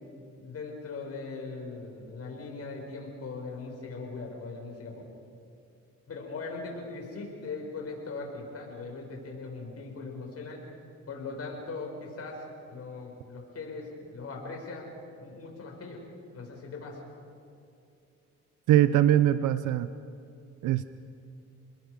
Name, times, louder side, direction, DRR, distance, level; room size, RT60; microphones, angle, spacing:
voice 1, 0.4-5.0 6.1-10.6 11.1-14.9 15.2-16.0 16.3-17.0, left 3 dB, 50° left, 1 dB, 5.9 m, -40 dB
voice 2, 18.7-19.9 20.6-20.8, right 12 dB, 85° right, 12 dB, 0.7 m, -22 dB
29.5 x 21.0 x 5.2 m, 2.6 s
cardioid pair, 90°, 30 cm